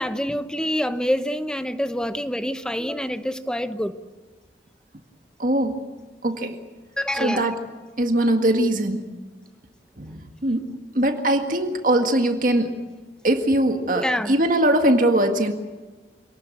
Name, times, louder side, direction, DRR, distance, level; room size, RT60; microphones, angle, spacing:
voice 1, 0.0-3.9 7.0-7.6 13.9-14.3, equal, 5° left, 1.0 m, -26 dB
voice 2, 5.4-5.8 6.2-6.6 7.2-7.6 8.0-9.1 10.0-12.8 13.2-15.5, right 1 dB, 50° right, 1.9 m, -21 dB
27.0 x 19.0 x 8.6 m
head